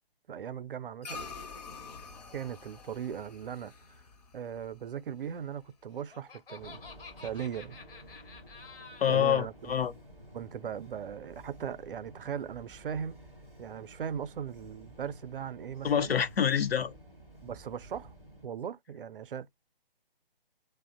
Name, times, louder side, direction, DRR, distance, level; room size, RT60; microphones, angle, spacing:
voice 1, 0.3-1.3 2.3-4.0 4.3-6.8 7.2-7.8 9.1-9.5 10.3-13.2 13.6-16.1 17.4-18.1 18.4-19.5, right 8 dB, 65° right, 0.4 m, -38 dB
sound 1, 1.0-5.7, left 4 dB, 45° left, 0.6 m, -47 dB
Laughter, 5.7-9.4, left 4 dB, 70° left, 1.0 m, -50 dB
sound 2, 6.6-18.5, right 1 dB, 5° left, 0.5 m, -52 dB
voice 2, 9.0-9.9 15.8-16.9, left 8 dB, 90° left, 0.6 m, -26 dB
2.7 x 2.0 x 2.4 m
figure-of-eight pair, 145°, 29 cm